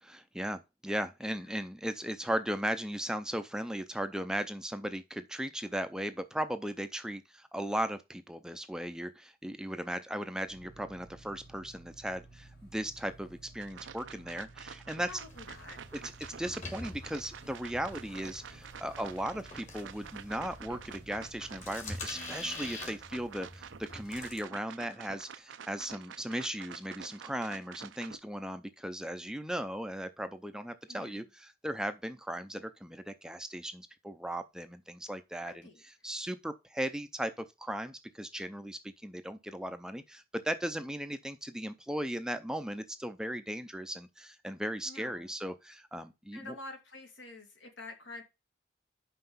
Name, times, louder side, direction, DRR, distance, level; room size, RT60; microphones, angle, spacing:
voice 1, 0.0-15.2 15.9-46.5, equal, 5° right, 0.5 m, -37 dB
sound 1, 10.5-21.8, right 2 dB, 60° left, 2.2 m, -55 dB
sound 2, 13.6-28.2, right 7 dB, 85° right, 0.5 m, -48 dB
voice 2, 15.1-15.8 30.9-31.2 35.4-35.8 44.9-45.3 46.3-48.2, left 2 dB, 80° left, 2.3 m, -47 dB
sound 3, 15.1-24.4, left 2 dB, 40° left, 1.9 m, -46 dB
5.9 x 5.7 x 5.5 m
head